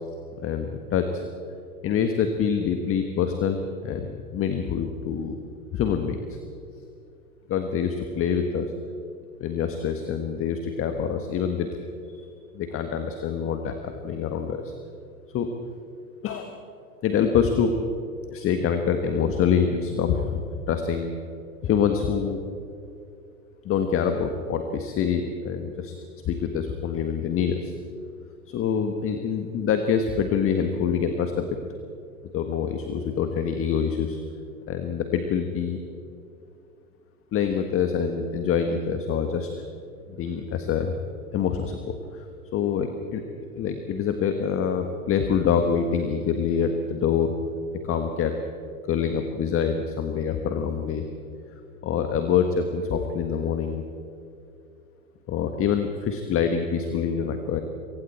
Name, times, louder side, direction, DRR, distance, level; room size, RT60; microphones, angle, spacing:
voice 1, 0.4-1.2 1.8-5.4 5.7-6.4 7.5-8.7 9.4-11.7 12.1-12.3 12.5-14.7 15.3-15.5 16.2-16.5 17.0-17.7 18.3-20.4 20.7-21.1 21.6-22.4 23.6-25.9 26.2-27.7 28.5-31.5 32.3-34.2 34.7-35.8 37.3-39.5 40.1-40.9 41.3-42.2 42.5-43.2 43.5-47.3 47.7-48.3 48.9-51.0 51.8-53.8 55.3-57.6, left 7 dB, 30° left, 6 dB, 1.6 m, -25 dB
27.5 x 23.5 x 4.4 m, 2.5 s
figure-of-eight pair, 95°, 45 cm